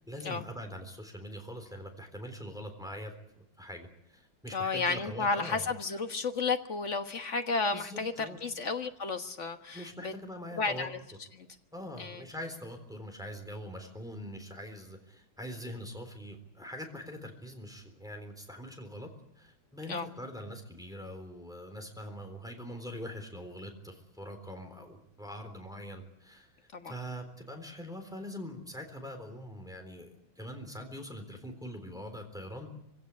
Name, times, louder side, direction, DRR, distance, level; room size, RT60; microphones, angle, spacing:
voice 1, 0.0-5.6 7.7-8.4 9.7-10.9 11.7-19.1 19.4-32.7, equal, ahead, 4 dB, 3.6 m, -43 dB
voice 2, 4.5-10.1 10.5-11.0 11.3-11.5 12.0-12.2 19.9-20.1 26.7-26.9, left 4 dB, 40° left, 7 dB, 1.5 m, -32 dB
24.0 x 17.0 x 9.7 m, 0.78 s
omnidirectional pair, 2.2 m